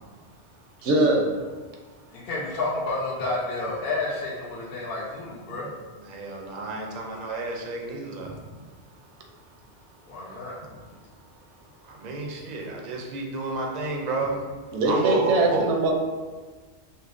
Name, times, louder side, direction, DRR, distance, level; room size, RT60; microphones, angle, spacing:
voice 1, 0.8-1.3 14.7-15.9, right 2 dB, 80° right, 0 dB, 0.9 m, -21 dB
voice 2, 2.1-5.7 10.1-10.5, left 2 dB, 60° left, -6 dB, 0.8 m, -30 dB
voice 3, 6.0-8.4 11.8-14.4 14.9-15.7, right 3 dB, 55° right, 0 dB, 0.5 m, -31 dB
5.3 x 2.0 x 2.5 m, 1.4 s
omnidirectional pair, 1.2 m